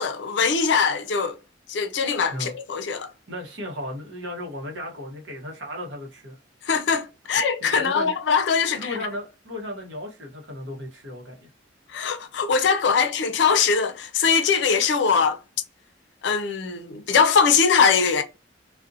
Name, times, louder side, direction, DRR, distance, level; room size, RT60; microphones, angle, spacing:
voice 1, 0.0-1.4 1.7-3.1 6.6-9.0 11.9-15.4 16.2-18.2, left 5 dB, 65° left, 0.4 m, -21 dB
voice 2, 3.3-6.4 7.6-8.1 8.7-11.5, left 1 dB, 65° right, 0.8 m, -35 dB
2.5 x 2.1 x 2.5 m
head